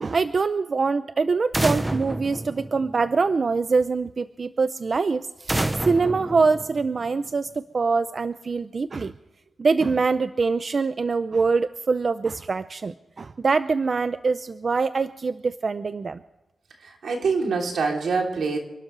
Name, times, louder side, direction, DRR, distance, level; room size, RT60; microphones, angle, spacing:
voice 1, 0.0-9.1 9.6-16.2, right 4 dB, 45° right, 12 dB, 0.5 m, -24 dB
sound 1, 1.5-3.3 5.5-7.3, right 1 dB, 15° right, 0.7 m, -28 dB
voice 2, 16.8-18.6, right 4 dB, 80° right, 1 dB, 3.2 m, -25 dB
28.5 x 12.5 x 3.3 m, 1.1 s
wide cardioid pair, 120°, 0 cm